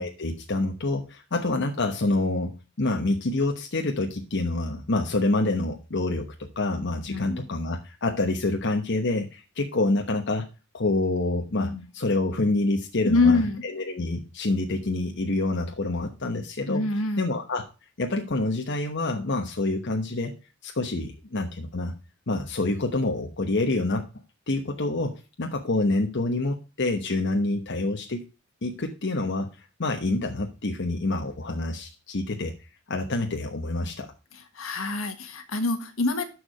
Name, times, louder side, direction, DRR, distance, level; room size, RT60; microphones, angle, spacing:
voice 1, 0.0-2.5 2.8-10.5 10.7-16.9 17.2-17.6 18.0-20.3 20.6-21.9 22.3-24.0 24.5-28.2 28.6-32.5 32.9-34.1, left 2 dB, 60° left, 3 dB, 1.1 m, -27 dB
voice 2, 7.1-7.5 11.5-11.8 13.0-13.6 16.7-17.2 34.5-36.3, left 3 dB, 75° left, 8 dB, 1.6 m, -25 dB
13.0 x 4.9 x 4.8 m, 0.31 s
head